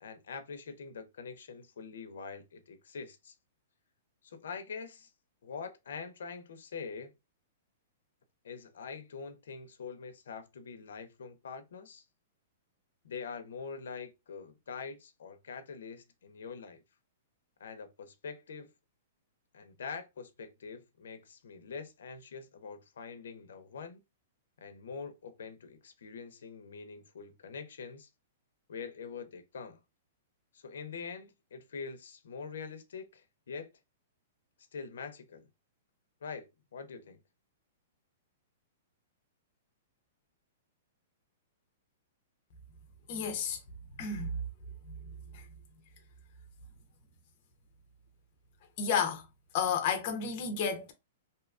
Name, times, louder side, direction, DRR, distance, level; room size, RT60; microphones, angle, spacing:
voice 1, 0.0-3.3 4.2-5.1 5.4-7.1 8.4-12.0 13.0-16.8 17.6-18.7 19.5-24.0 24.6-28.1 28.7-29.8 30.5-33.7 34.7-35.5 36.2-37.2, left 5 dB, 85° left, 0.5 m, -44 dB
voice 2, 43.1-43.6 44.0-44.3 45.3-45.4 48.8-49.2 49.5-50.9, left 6 dB, 35° left, 0.4 m, -31 dB
2.7 x 2.2 x 2.4 m
hypercardioid pair, 175°, 0 cm